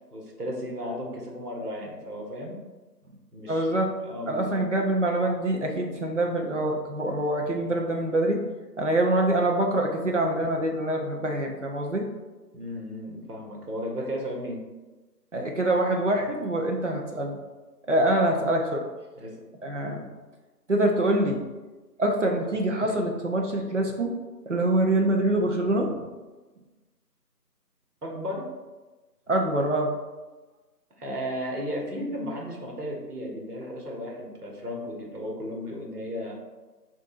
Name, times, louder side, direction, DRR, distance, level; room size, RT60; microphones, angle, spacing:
voice 1, 0.1-2.6 3.3-4.7 12.5-14.6 19.2-19.3 28.0-28.5 31.0-36.4, equal, 65° right, -2 dB, 1.3 m, -34 dB
voice 2, 3.5-3.9 4.3-8.4 8.8-12.1 15.3-17.4 17.9-18.8 19.6-20.1 20.7-21.4 22.0-24.1 24.5-25.9 29.3-29.9, right 1 dB, 50° right, 1 dB, 0.6 m, -25 dB
6.4 x 2.6 x 2.5 m, 1.2 s
figure-of-eight pair, 170°, 48 cm